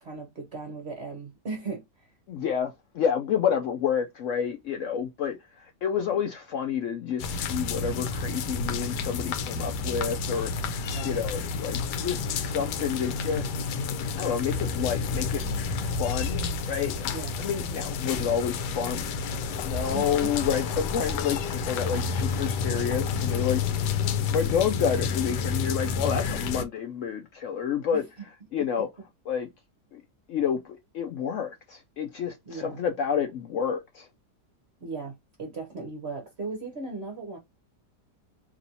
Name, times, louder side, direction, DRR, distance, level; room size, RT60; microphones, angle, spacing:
voice 1, 0.0-2.1 10.9-11.2 17.1-17.3 19.9-20.3 27.9-28.0 32.5-32.8 34.8-37.4, right 3 dB, 45° right, 1.0 m, -37 dB
voice 2, 2.3-10.5 10.8-13.5 14.1-15.4 15.8-17.1 17.4-19.1 19.3-28.0 28.5-28.9 29.3-29.5 29.9-30.0 30.3-34.1, left 7 dB, 70° left, 0.7 m, -29 dB
sound 1, 7.2-26.6, left 5 dB, 90° left, 1.2 m, -30 dB
4.2 x 3.0 x 2.7 m
omnidirectional pair, 1.8 m